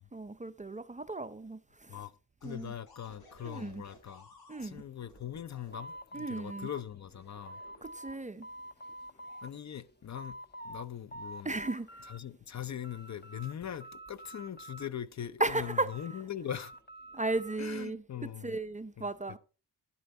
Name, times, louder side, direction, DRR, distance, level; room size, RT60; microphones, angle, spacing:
voice 1, 0.1-1.6 1.9-2.0 2.4-2.7 3.4-3.8 4.5-4.8 6.1-6.7 7.8-8.5 11.4-11.9 15.4-15.9 17.1-18.0 18.4-19.4, right 2 dB, 20° right, 0.6 m, -35 dB
sound 1, 2.4-5.7 6.8-8.4 9.1-9.4, left 1 dB, 60° left, 5.3 m, -58 dB
voice 2, 2.4-4.3 4.6-7.6 9.4-10.4 10.6-11.6 12.1-16.7 17.6-18.6 19.0-19.1, left 10 dB, 40° left, 0.6 m, -41 dB
sound 2, 5.7-8.2 8.4-9.5 9.9-10.8 11.1-12.2 12.5-13.5 13.8-15.1 15.5-17.6, right 1 dB, 25° left, 1.1 m, -47 dB
11.0 x 7.9 x 4.2 m
cardioid pair, 85°, 42 cm